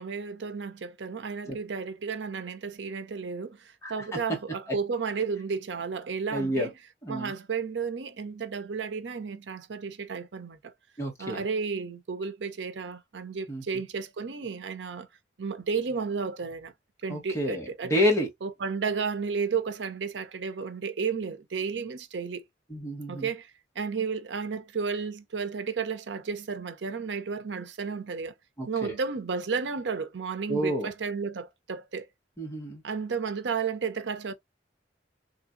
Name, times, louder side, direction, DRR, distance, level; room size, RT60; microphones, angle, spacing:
voice 1, 0.0-6.7 7.1-10.7 11.2-15.1 15.4-16.7 17.0-18.0 18.4-22.4 23.1-23.5 23.8-28.3 28.7-32.1 32.8-34.3, right 5 dB, 85° right, 0.6 m, -32 dB
voice 2, 6.3-6.7 7.0-7.3 11.0-11.4 13.5-13.6 17.1-18.3 22.7-23.3 28.6-28.9 30.5-30.9 32.4-32.8, equal, 15° left, 1.5 m, -29 dB
3.1 x 2.6 x 2.5 m
head